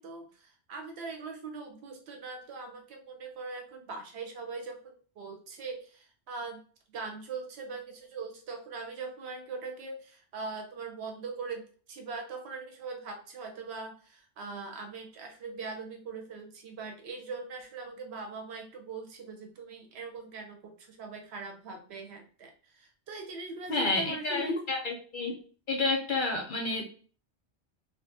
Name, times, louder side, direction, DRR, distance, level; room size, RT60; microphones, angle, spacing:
voice 1, 0.0-6.6 6.9-24.6, right 4 dB, 70° right, 3 dB, 0.8 m, -41 dB
voice 2, 23.7-25.4 25.7-26.8, left 3 dB, 60° left, 0 dB, 0.6 m, -30 dB
2.4 x 2.1 x 2.6 m, 0.41 s
omnidirectional pair, 1.2 m